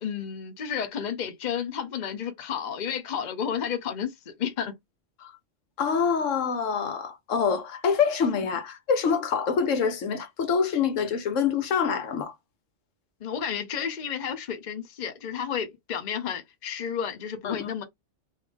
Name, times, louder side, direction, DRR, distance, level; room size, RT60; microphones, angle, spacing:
voice 1, 0.0-4.7 13.2-17.8, left 8 dB, 45° left, 0.8 m, -31 dB
voice 2, 5.8-12.3 17.4-17.7, left 6 dB, 85° left, 1.1 m, -26 dB
3.3 x 2.7 x 3.4 m
omnidirectional pair, 1.3 m